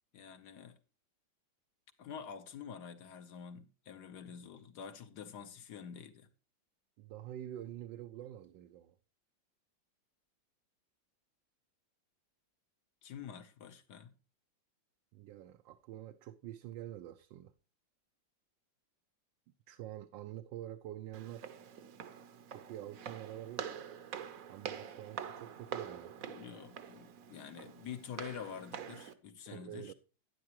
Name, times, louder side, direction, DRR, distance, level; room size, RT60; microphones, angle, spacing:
voice 1, 0.1-0.8 2.0-6.3 13.0-14.2 26.3-29.9, left 8 dB, 65° left, 1.4 m, -47 dB
voice 2, 7.0-9.0 15.1-17.5 19.7-21.6 22.5-23.7 24.5-26.1 29.5-29.9, right 12 dB, 80° right, 1.3 m, -47 dB
Walk footsteps, 21.1-29.1, right 8 dB, 55° right, 1.1 m, -46 dB
11.0 x 9.7 x 2.9 m
omnidirectional pair, 2.0 m